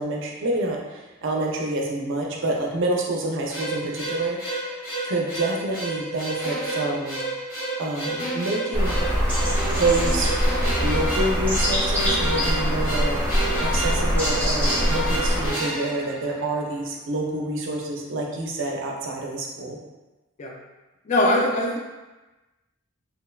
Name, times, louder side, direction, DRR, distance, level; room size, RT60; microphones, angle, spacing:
voice 1, 0.0-7.4 7.8-9.0 9.7-10.3 10.8-19.8, right 2 dB, 65° right, -1 dB, 0.4 m, -28 dB
sound 1, 3.5-16.8, right 1 dB, 80° left, 1.3 m, -30 dB
sound 2, 8.7-15.5, equal, 5° left, 0.8 m, -23 dB
voice 2, 21.1-21.8, left 1 dB, 35° left, -1 dB, 0.3 m, -22 dB
2.8 x 2.1 x 2.2 m, 1.1 s
head